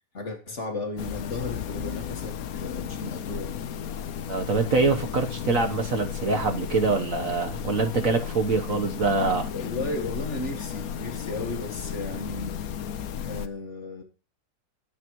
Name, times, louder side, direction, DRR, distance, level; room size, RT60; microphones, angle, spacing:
voice 1, 0.1-3.6 9.4-12.6 13.2-14.0, left 2 dB, 40° left, 2.1 m, -34 dB
sound 1, 1.0-13.5, left 8 dB, 60° left, 1.1 m, -34 dB
voice 2, 4.3-9.5, right 3 dB, 50° right, 1.4 m, -24 dB
21.5 x 8.8 x 3.1 m
omnidirectional pair, 2.0 m